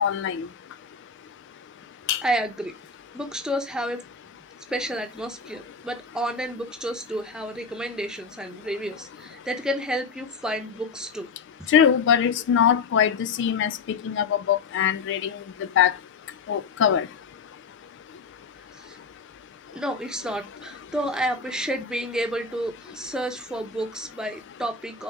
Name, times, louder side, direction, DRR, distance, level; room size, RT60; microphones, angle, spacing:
voice 1, 0.0-0.5 2.1-2.2 11.7-15.3 15.8-15.9 16.5-17.1, left 8 dB, 55° left, 0.3 m, -22 dB
voice 2, 2.2-2.7 3.1-4.0 4.7-11.3 11.6-11.7 18.7-19.0 19.7-25.0, right 1 dB, 5° right, 0.9 m, -30 dB
6.0 x 3.9 x 4.6 m
head